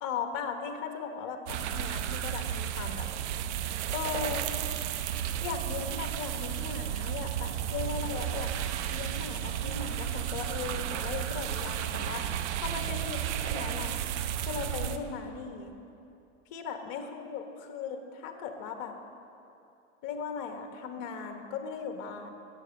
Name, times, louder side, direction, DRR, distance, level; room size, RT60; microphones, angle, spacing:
voice 1, 0.0-3.1 3.9-4.5 5.4-14.0 14.4-15.7 16.5-19.0 20.0-22.3, left 6 dB, 50° left, 5 dB, 1.4 m, -38 dB
sound 1, 1.5-15.0, right 10 dB, 60° right, 0.8 m, -33 dB
16.5 x 7.0 x 6.6 m, 2.7 s
figure-of-eight pair, 85°, 38 cm